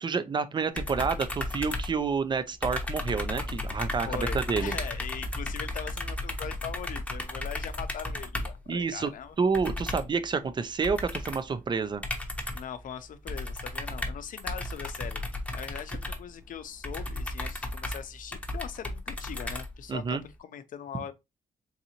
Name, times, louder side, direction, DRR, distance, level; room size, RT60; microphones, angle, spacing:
voice 1, 0.0-4.7 8.7-9.1 9.4-12.0 19.9-20.2, right 5 dB, 30° right, 0.5 m, -29 dB
sound 1, 0.8-2.3 2.6-8.6 9.5-10.2 10.8-11.5 12.0-12.8 13.3-20.1, left 1 dB, 10° left, 0.8 m, -34 dB
voice 2, 4.1-9.4 12.5-15.2 15.5-21.1, left 8 dB, 70° left, 0.6 m, -41 dB
3.9 x 2.6 x 2.8 m
cardioid pair, 120°, 15 cm